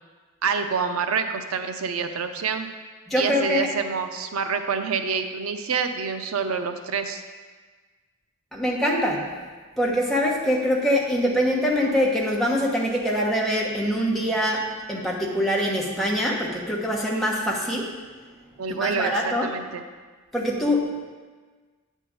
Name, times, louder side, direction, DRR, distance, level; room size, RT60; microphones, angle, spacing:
voice 1, 0.4-2.7 3.2-7.2 18.6-19.8, right 5 dB, 85° right, 7 dB, 0.5 m, -27 dB
voice 2, 3.1-3.7 8.5-9.3 9.8-17.9 18.7-19.5 20.3-20.9, equal, ahead, -3 dB, 1.1 m, -24 dB
9.2 x 3.6 x 7.0 m, 1.4 s
head